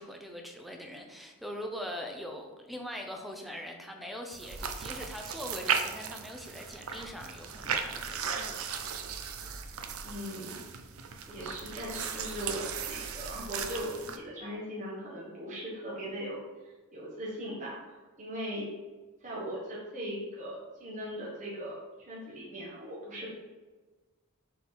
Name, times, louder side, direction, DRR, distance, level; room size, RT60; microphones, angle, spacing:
voice 1, 0.0-8.8, equal, ahead, 2 dB, 0.7 m, -42 dB
sound 1, 4.3-14.2, right 6 dB, 75° right, 0.7 m, -36 dB
voice 2, 10.0-10.6 11.2-18.7 19.2-21.8 22.1-23.3, equal, 35° right, -6 dB, 1.5 m, -39 dB
7.2 x 4.0 x 4.4 m, 1.3 s
head